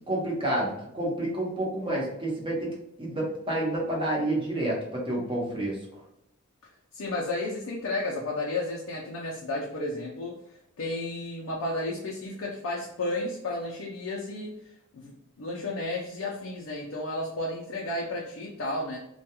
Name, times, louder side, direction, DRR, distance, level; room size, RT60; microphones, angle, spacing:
voice 1, 0.1-5.8, right 1 dB, 25° right, -4 dB, 0.8 m, -29 dB
voice 2, 6.9-10.4 10.8-14.5 14.9-19.0, left 2 dB, 65° left, -2 dB, 0.4 m, -32 dB
2.2 x 2.2 x 2.8 m, 0.80 s
head